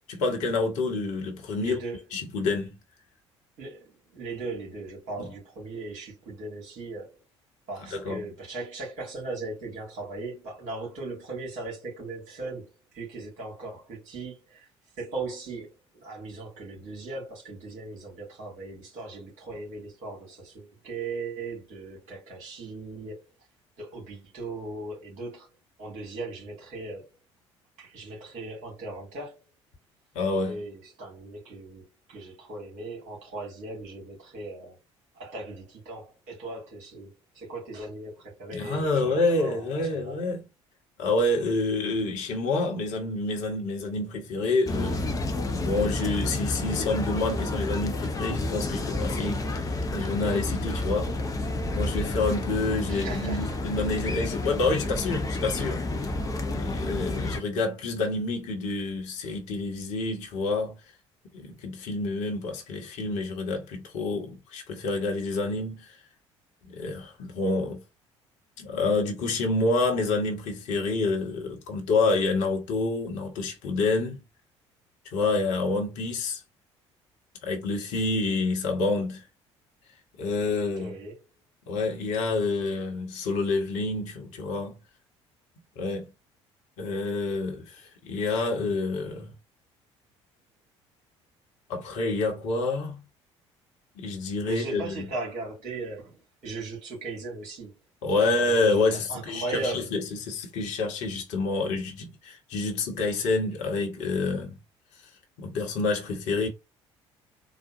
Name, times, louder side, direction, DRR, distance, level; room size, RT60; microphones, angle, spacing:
voice 1, 0.1-1.8 2.1-2.8 7.9-8.2 30.1-30.6 38.5-40.4 41.0-45.1 45.5-51.1 51.4-55.8 56.5-60.7 61.3-66.0 66.7-67.8 68.6-74.2 75.1-76.4 77.4-79.2 80.2-80.9 81.7-84.7 85.8-86.1 86.8-89.3 91.7-93.0 94.0-95.1 98.0-104.6 105.4-106.5, left 3 dB, 55° left, 1.0 m, -28 dB
voice 2, 1.6-2.0 3.6-7.2 7.7-14.7 15.0-15.7 15.9-23.2 23.8-25.5 25.8-27.1 27.8-29.4 30.5-34.8 35.1-40.2 52.9-53.6 80.8-81.2 94.4-97.7 98.2-98.6 98.9-99.9, right 3 dB, 55° right, 2.2 m, -38 dB
sound 1, 44.7-57.4, left 2 dB, 25° left, 0.7 m, -30 dB
4.0 x 2.1 x 2.7 m
figure-of-eight pair, 55°, 15 cm